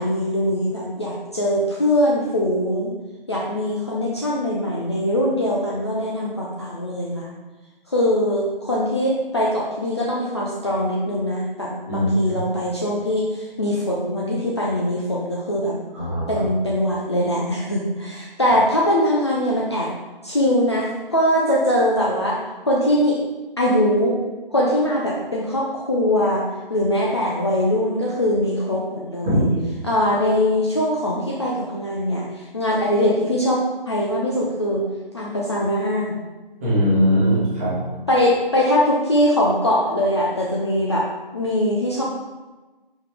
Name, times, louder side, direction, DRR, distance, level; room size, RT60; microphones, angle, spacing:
voice 1, 0.0-2.9 3.3-7.3 7.9-15.8 16.3-19.9 20.2-22.4 22.6-23.2 23.6-24.2 24.5-29.4 29.8-34.9 35.1-36.2 38.1-41.1 41.3-42.0, left 1 dB, 30° left, -4 dB, 0.5 m, -22 dB
voice 2, 11.9-12.4 15.9-16.4 29.2-29.7 36.6-37.9, equal, 15° right, -9 dB, 1.3 m, -20 dB
5.3 x 5.0 x 3.5 m, 1.2 s
figure-of-eight pair, 150°, 29 cm